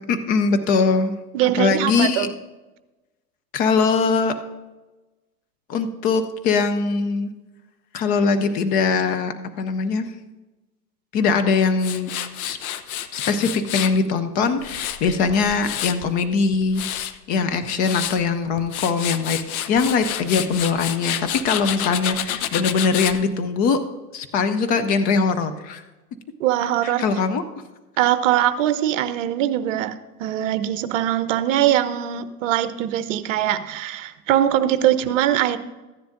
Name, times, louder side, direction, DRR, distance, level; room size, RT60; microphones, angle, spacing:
voice 1, 0.1-1.1 1.4-2.3 3.5-4.3 5.7-7.3 7.9-10.1 11.1-12.1 12.4-12.6 13.1-16.8 17.3-19.4 19.7-23.8 24.1-25.8 26.8-27.4, left 5 dB, 20° left, 8 dB, 0.4 m, -21 dB
voice 2, 1.3-2.3 26.4-27.0 28.0-35.6, right 12 dB, 55° right, 12 dB, 0.8 m, -22 dB
Tools, 11.8-14.0 14.4-16.1 16.5-17.1 17.6-18.2 18.6-23.2, left 11 dB, 60° left, 0.8 m, -29 dB
14.0 x 10.0 x 2.6 m, 1.1 s
hypercardioid pair, 100°, 48 cm